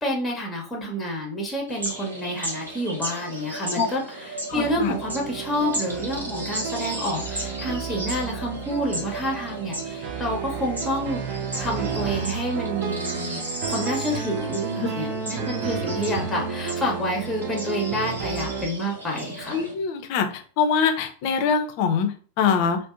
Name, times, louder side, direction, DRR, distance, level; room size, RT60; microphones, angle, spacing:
voice 1, 0.0-13.4 13.7-19.6, equal, 10° left, -1 dB, 0.7 m, -29 dB
sound 1, 1.7-19.7, right 1 dB, 75° right, 0.8 m, -35 dB
voice 2, 4.5-4.9 19.5-22.8, left 6 dB, 45° left, 6 dB, 0.4 m, -23 dB
sound 2, 4.5-18.7, right 6 dB, 40° right, 0.4 m, -32 dB
2.6 x 2.1 x 2.4 m, 0.41 s
figure-of-eight pair, 90°, 0 cm